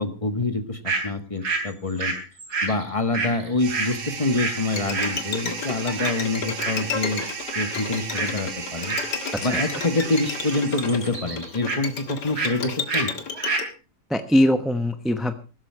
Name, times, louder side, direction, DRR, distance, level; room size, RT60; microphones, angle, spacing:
voice 1, 0.0-2.1 2.6-7.2 7.5-9.0 9.4-13.1, left 2 dB, 20° left, 9 dB, 1.4 m, -26 dB
sound 1, 0.9-1.0 1.4-4.6 4.9-5.2 6.0-6.2 6.6-6.9 7.2-7.7 8.0-8.4 8.9-9.1 9.5-10.3 10.5-11.8 12.3-12.6 12.9-13.1 13.3-13.7, right 3 dB, 65° right, 3.8 m, -28 dB
sound 2, 3.6-11.3, right 6 dB, 85° right, 2.3 m, -36 dB
Bowed string instrument, 4.7-13.7, left 5 dB, 85° left, 2.4 m, -32 dB
voice 2, 9.3-9.8 14.1-15.3, left 1 dB, ahead, 8 dB, 0.6 m, -22 dB
16.0 x 13.0 x 4.6 m, 0.34 s
omnidirectional pair, 1.8 m